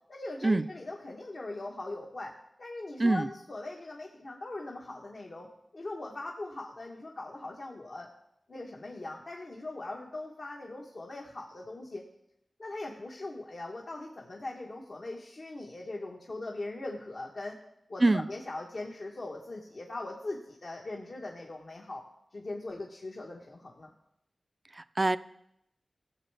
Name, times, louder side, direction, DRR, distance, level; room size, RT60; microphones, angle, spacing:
voice 1, 0.1-2.3 2.6-8.1 8.5-12.0 12.6-17.6 17.9-22.1 22.3-23.9, left 2 dB, 65° left, -1 dB, 1.2 m, -40 dB
voice 2, 24.8-25.2, right 2 dB, 40° right, 14 dB, 0.4 m, -24 dB
15.0 x 7.1 x 3.4 m, 0.80 s
cardioid pair, 45°, 0 cm